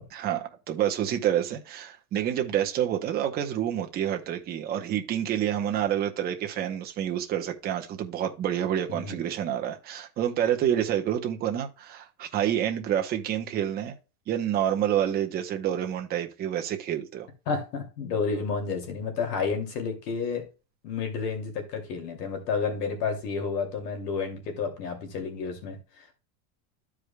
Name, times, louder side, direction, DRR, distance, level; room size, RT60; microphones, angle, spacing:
voice 1, 0.1-14.0 14.3-17.3, right 10 dB, 20° right, 0.8 m, -28 dB
voice 2, 8.9-9.2 17.5-20.4 20.8-26.1, left 5 dB, 80° left, 2.6 m, -31 dB
14.0 x 4.9 x 2.2 m
supercardioid pair, 180°, 48 cm